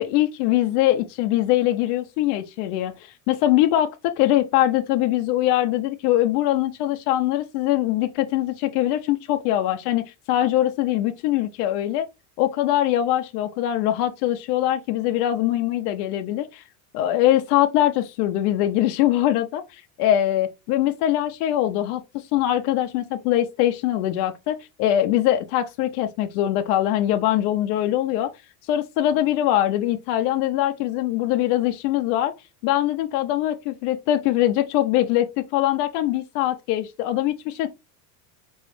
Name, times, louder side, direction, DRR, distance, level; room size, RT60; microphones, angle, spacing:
voice 1, 0.0-12.1 12.4-16.6 16.9-28.3 28.7-32.3 32.6-37.7, left 13 dB, 70° left, 0.7 m, -22 dB
4.6 x 3.1 x 3.1 m
supercardioid pair, 125°, 49 cm